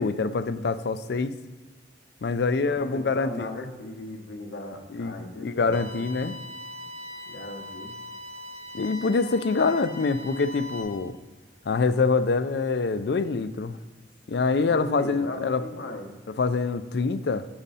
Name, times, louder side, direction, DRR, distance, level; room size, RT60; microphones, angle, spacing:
voice 1, 0.0-1.3 2.2-3.7 4.9-6.3 8.7-11.2 11.7-13.8 14.3-15.6 16.4-17.5, left 4 dB, 60° left, 13 dB, 0.4 m, -25 dB
voice 2, 2.7-6.0 7.3-7.9 14.6-16.1, left 1 dB, 75° left, 2 dB, 1.0 m, -38 dB
sound 1, 5.7-10.8, left 1 dB, 35° right, 1.1 m, -41 dB
8.9 x 5.0 x 4.2 m, 1.2 s
head